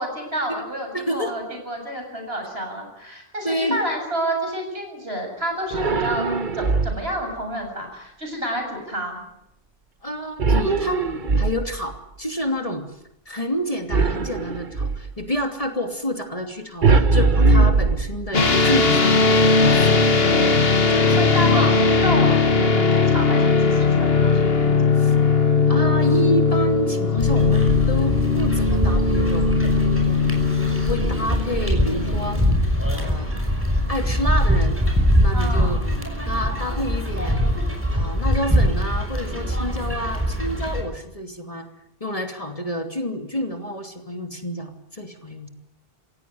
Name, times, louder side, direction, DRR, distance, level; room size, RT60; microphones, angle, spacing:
voice 1, 0.0-6.3 6.5-9.2 21.2-24.7 35.3-35.8, equal, 75° right, 3 dB, 7.8 m, -29 dB
voice 2, 0.9-1.4 3.4-3.8 10.0-12.9 13.3-20.5 20.9-21.7 25.0-25.1 25.7-29.6 30.0-30.3 30.7-32.4 32.9-33.4 33.9-34.8 35.2-35.8 36.2-37.4 37.9-41.7 42.0-45.5, equal, 35° left, 5 dB, 2.9 m, -28 dB
sound 1, 5.7-7.2 10.4-12.0 13.9-15.1 16.8-18.5, right 3 dB, 50° right, 1.4 m, -20 dB
sound 2, 18.3-32.5, left 4 dB, 70° left, 1.9 m, -19 dB
sound 3, 27.2-40.8, equal, 10° right, 5.7 m, -23 dB
27.5 x 16.5 x 9.6 m, 0.81 s
omnidirectional pair, 1.0 m